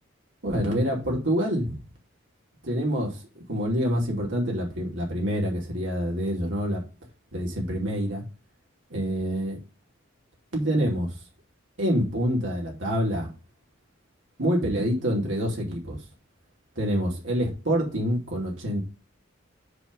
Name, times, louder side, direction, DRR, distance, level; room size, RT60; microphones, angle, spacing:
voice 1, 0.4-1.7 2.6-6.8 7.3-8.2 8.9-9.6 10.5-11.1 11.8-13.3 14.4-16.0 16.8-18.8, equal, 70° right, 2.9 m, -26 dB
9.7 x 3.4 x 5.2 m
head